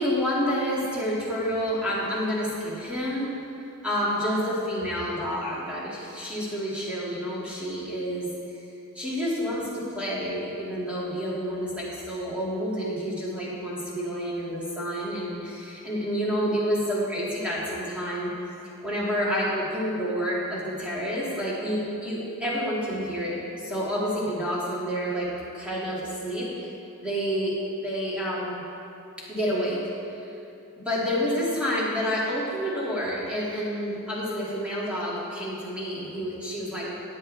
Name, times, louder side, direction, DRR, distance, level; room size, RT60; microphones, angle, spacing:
voice 1, 0.0-3.3 3.8-8.6 8.9-18.3 18.8-25.3 25.5-26.7 27.0-28.6 29.3-29.8 30.8-36.9, equal, 5° right, -8 dB, 2.3 m, -29 dB
13.5 x 9.5 x 3.4 m, 2.8 s
head